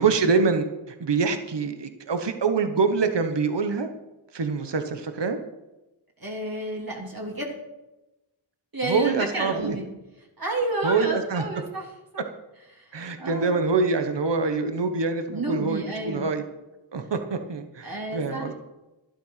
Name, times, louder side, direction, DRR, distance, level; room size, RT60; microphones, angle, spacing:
voice 1, 0.0-3.9 4.3-5.4 8.9-9.8 10.8-11.5 12.2-12.3 12.9-16.4 16.9-18.5, right 4 dB, 65° right, 7 dB, 1.2 m, -25 dB
voice 2, 6.2-7.5 8.7-9.9 10.4-11.8 12.1-12.2 12.7-12.8 13.2-13.6 15.3-16.3 17.8-18.5, right 2 dB, 50° right, -1 dB, 3.4 m, -30 dB
12.0 x 11.5 x 5.8 m, 1.0 s
wide cardioid pair, 55°, 45 cm